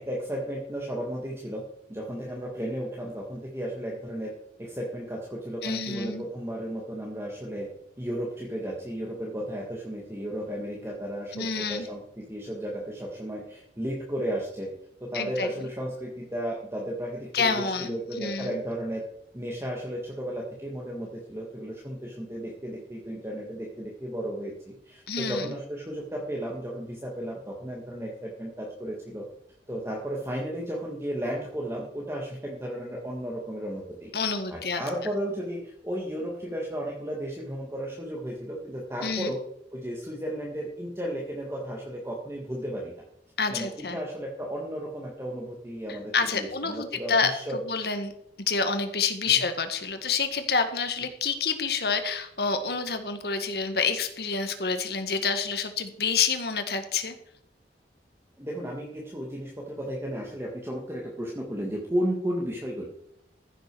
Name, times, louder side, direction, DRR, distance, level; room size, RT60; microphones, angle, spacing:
voice 1, 0.0-1.6 1.9-4.3 4.6-7.7 8.0-14.7 15.0-19.0 19.3-29.3 29.7-34.1 34.5-39.4 39.7-42.9 43.5-47.6 49.3-49.4 58.4-62.9, equal, 15° right, -2 dB, 1.7 m, -34 dB
voice 2, 5.6-6.2 11.3-11.9 15.1-15.7 17.3-18.6 25.1-25.5 34.1-34.8 39.0-39.3 43.4-44.0 46.1-48.1 48.5-57.2, left 5 dB, 65° left, 8 dB, 1.6 m, -28 dB
14.5 x 6.6 x 6.1 m, 0.75 s
head